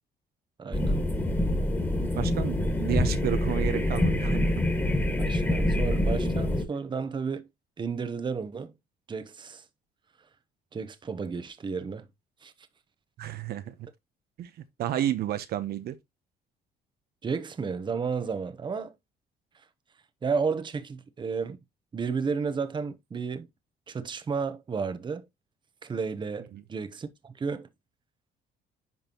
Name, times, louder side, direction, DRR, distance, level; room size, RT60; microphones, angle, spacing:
voice 1, 0.6-1.0 5.2-7.5 7.8-8.7 9.1-9.6 10.7-12.1 12.4-12.5 17.2-18.9 20.2-21.6 21.9-23.5 23.9-25.3 25.8-27.7, right 5 dB, 25° right, 1.0 m, -32 dB
sound 1, 0.7-6.6, left 1 dB, 10° left, 1.9 m, -26 dB
voice 2, 2.2-4.5 13.2-13.7 14.4-14.5 14.8-15.9 26.5-26.6, right 11 dB, 65° right, 1.0 m, -31 dB
10.5 x 4.1 x 3.0 m
cardioid pair, 110°, 17 cm